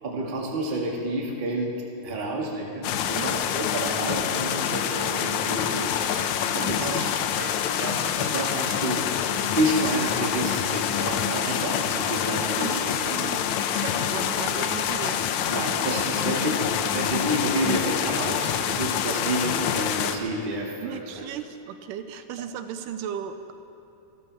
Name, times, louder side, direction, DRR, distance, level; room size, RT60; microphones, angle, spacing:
voice 1, 0.0-6.0 6.5-12.8 15.5-16.7 16.9-21.1, right 1 dB, 25° right, -2 dB, 1.1 m, -29 dB
sound 1, 2.8-20.2, left 9 dB, 75° left, 1.8 m, -26 dB
voice 2, 6.6-7.1 12.6-15.2 16.4-16.6 20.8-23.5, right 9 dB, 85° right, 9 dB, 2.2 m, -36 dB
27.0 x 13.0 x 3.4 m, 2.7 s
omnidirectional pair, 3.9 m